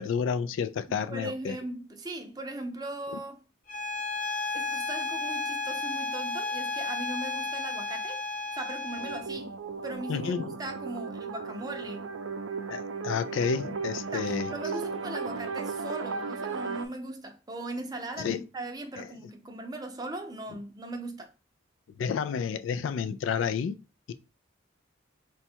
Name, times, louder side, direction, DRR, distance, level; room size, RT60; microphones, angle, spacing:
voice 1, 0.0-1.6 10.1-10.5 12.7-14.5 18.2-18.4 19.0-19.1 22.0-23.8 24.1-24.2, left 6 dB, 75° left, 0.3 m, -30 dB
voice 2, 1.1-3.4 4.5-8.2 8.5-9.5 9.8-12.1 14.1-21.3, right 1 dB, 20° right, 0.6 m, -39 dB
Bowed string instrument, 3.7-9.3, left 3 dB, 40° left, 0.6 m, -33 dB
sound 1, 9.0-16.9, right 4 dB, 80° right, 0.5 m, -36 dB
4.0 x 2.3 x 4.3 m
head